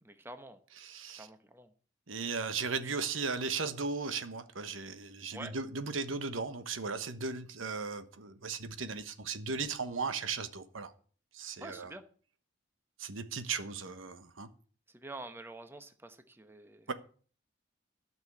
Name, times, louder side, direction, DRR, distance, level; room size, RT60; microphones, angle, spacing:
voice 1, 0.0-0.6 1.1-1.7 5.3-5.6 11.6-12.0 14.9-16.9, right 2 dB, 10° right, 0.9 m, -47 dB
voice 2, 0.8-1.3 2.1-10.9 11.3-11.9 13.0-14.5 16.9-17.0, right 4 dB, 90° right, 1.2 m, -36 dB
13.0 x 6.1 x 8.3 m
head